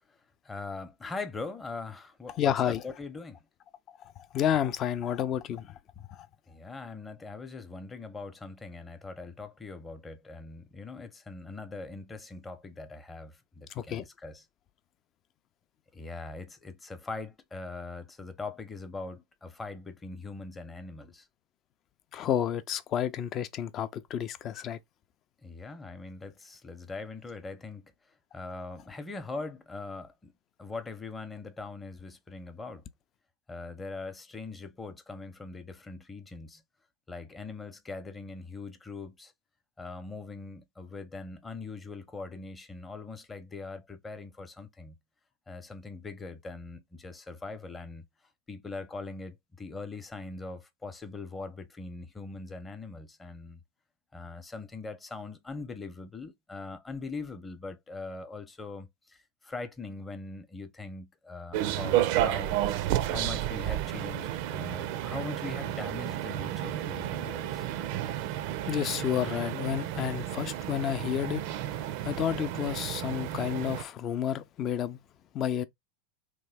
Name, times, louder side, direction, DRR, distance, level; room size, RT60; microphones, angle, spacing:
voice 1, 0.4-3.4 6.5-14.5 15.9-21.3 25.4-27.9 28.3-30.3 30.6-32.8 33.5-36.6 37.1-39.3 39.8-45.0 45.5-48.0 48.5-53.6 54.1-59.2 59.4-62.6 63.1-67.6, left 3 dB, 20° left, 0.7 m, -41 dB
voice 2, 2.4-2.8 4.3-5.7 6.1-6.3 13.8-14.0 22.1-24.8 68.7-71.4 71.7-75.0 75.3-75.6, left 10 dB, 40° left, 0.4 m, -30 dB
sound 1, 61.5-73.8, right 12 dB, 60° right, 0.4 m, -32 dB
3.0 x 2.2 x 3.3 m
hypercardioid pair, 95°, 0 cm